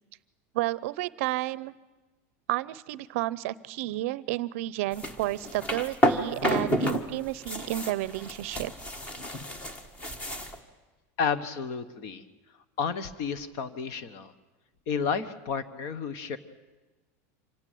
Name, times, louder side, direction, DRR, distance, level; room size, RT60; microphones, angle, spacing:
voice 1, 0.5-1.7 2.5-8.7, right 16 dB, 60° right, 19 dB, 0.7 m, -31 dB
sound 1, 4.9-7.0 7.3-10.6, equal, 15° left, 1.5 m, -30 dB
voice 2, 11.2-12.2 12.8-14.3 14.9-16.4, left 6 dB, 40° left, 14 dB, 1.4 m, -31 dB
25.5 x 17.0 x 9.3 m, 1.2 s
supercardioid pair, 175°, 9 cm